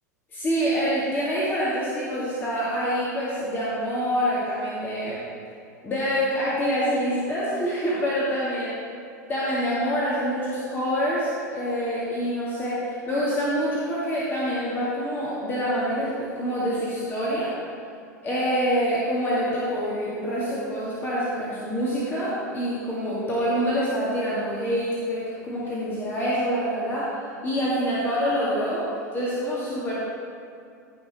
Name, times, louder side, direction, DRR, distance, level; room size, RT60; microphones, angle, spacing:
voice 1, 0.3-5.2 5.8-8.7 9.3-17.6 18.2-27.1 27.4-28.9 29.1-29.9, equal, 25° left, -8 dB, 2.1 m, -26 dB
15.5 x 5.8 x 4.2 m, 2.4 s
figure-of-eight pair, 85°, 9 cm